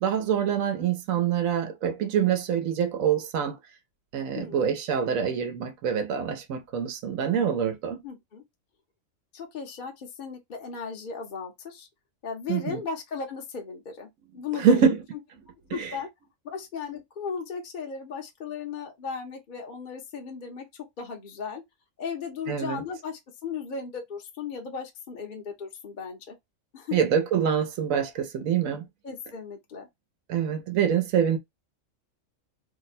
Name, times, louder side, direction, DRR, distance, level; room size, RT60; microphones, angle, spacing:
voice 1, 0.0-3.6 4.1-8.0 12.5-12.8 14.5-15.0 15.8-15.9 22.5-22.8 26.9-28.8 30.3-31.4, right 8 dB, 85° right, 1.1 m, -25 dB
voice 2, 8.0-8.4 9.3-11.9 12.2-14.1 14.3-14.9 15.7-16.1 16.4-20.6 21.0-21.6 22.0-26.3 26.7-27.0 29.0-29.9, left 5 dB, 45° left, 0.8 m, -36 dB
2.8 x 2.1 x 4.0 m
omnidirectional pair, 1.4 m